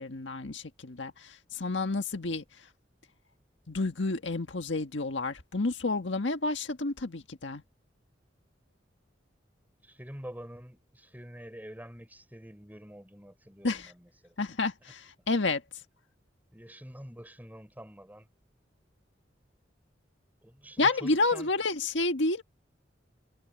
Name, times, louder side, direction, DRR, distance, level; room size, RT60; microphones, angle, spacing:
voice 1, 0.0-2.4 3.7-7.6 13.6-13.9 14.4-15.6 20.8-22.4, left 3 dB, 85° left, 1.6 m, -30 dB
voice 2, 9.8-14.3 16.5-18.3 20.4-21.5, equal, 10° right, 5.8 m, -47 dB
head